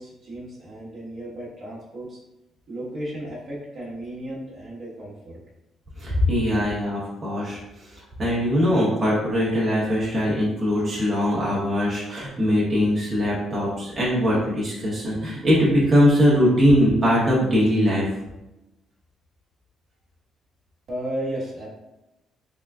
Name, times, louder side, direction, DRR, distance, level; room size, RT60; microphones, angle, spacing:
voice 1, 0.0-2.2 2.7-5.4 20.9-21.7, right 1 dB, 45° right, -6 dB, 1.2 m, -34 dB
voice 2, 6.0-7.9 8.2-18.1, equal, 20° right, -8 dB, 1.1 m, -21 dB
3.8 x 3.7 x 2.3 m, 0.92 s
cardioid pair, 165°, 0 cm